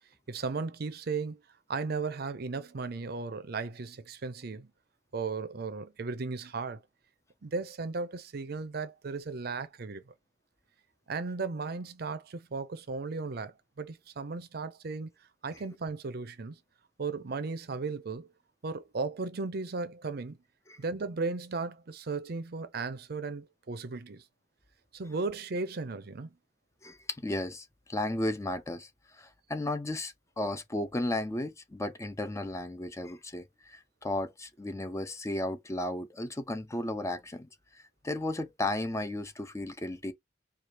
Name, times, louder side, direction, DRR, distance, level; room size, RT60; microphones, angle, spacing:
voice 1, 0.3-1.4 1.7-4.7 5.1-6.8 7.4-10.1 11.1-15.1 15.4-16.6 17.0-18.3 18.6-20.4 20.8-24.2 24.9-26.3, right 4 dB, 55° right, 0.6 m, -36 dB
voice 2, 27.2-37.5 38.0-40.1, left 1 dB, 15° left, 0.5 m, -34 dB
4.8 x 2.4 x 2.9 m
head